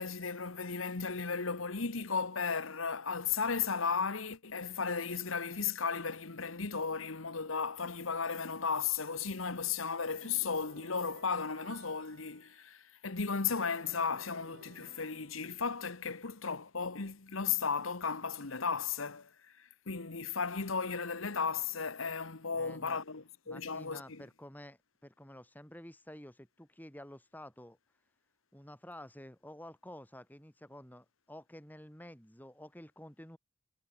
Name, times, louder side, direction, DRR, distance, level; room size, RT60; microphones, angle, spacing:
voice 1, 0.0-19.3 19.9-24.2, left 5 dB, 80° left, 1.5 m, -35 dB
sound 1, 10.2-12.8 13.5-15.9, right 3 dB, 55° right, 6.6 m, -57 dB
voice 2, 22.5-23.0 23.5-27.8 28.5-33.4, left 1 dB, 10° left, 4.4 m, -51 dB
head